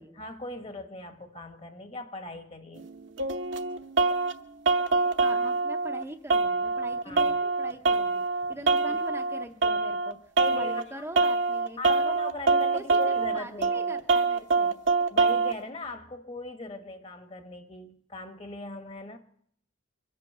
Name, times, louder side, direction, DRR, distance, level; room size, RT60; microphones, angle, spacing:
voice 1, 0.0-2.9 7.0-7.4 8.9-9.0 10.4-10.8 11.8-13.9 15.1-19.2, left 2 dB, 30° left, 1.2 m, -39 dB
sound 1, 2.8-4.3 4.7-6.0 6.3-10.1 10.4-10.8 11.2-15.5, right 3 dB, 65° right, 1.0 m, -25 dB
voice 2, 5.2-10.2 10.5-12.2 12.7-14.8, right 1 dB, 10° right, 0.6 m, -42 dB
23.5 x 8.4 x 6.6 m
head